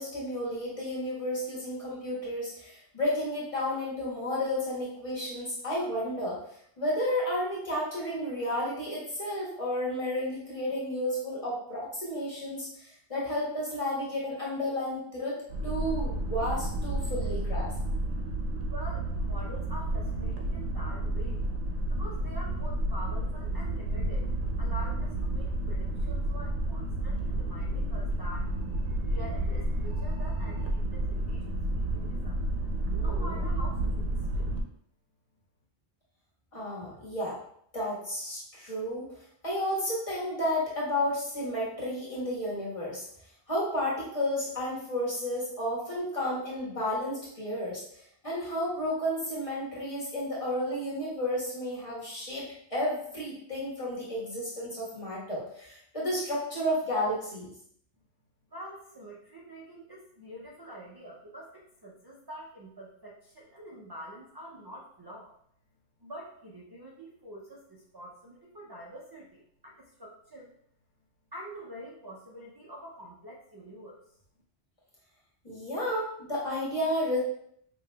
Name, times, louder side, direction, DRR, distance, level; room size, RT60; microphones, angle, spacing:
voice 1, 0.0-6.4 6.8-15.3 15.6-17.7 36.5-37.4 37.7-39.1 39.4-43.1 43.5-52.4 52.7-57.5 75.4-77.2, left 1 dB, 30° left, -7 dB, 1.4 m, -32 dB
sound 1, 15.5-34.6, right 1 dB, 80° right, 0.9 m, -31 dB
voice 2, 18.7-21.4 21.9-24.3 24.6-28.5 29.0-32.4 33.0-34.5 58.5-65.3 66.0-70.5 71.3-74.2, equal, 35° right, -3 dB, 0.4 m, -46 dB
5.0 x 2.9 x 2.2 m, 0.68 s
omnidirectional pair, 1.2 m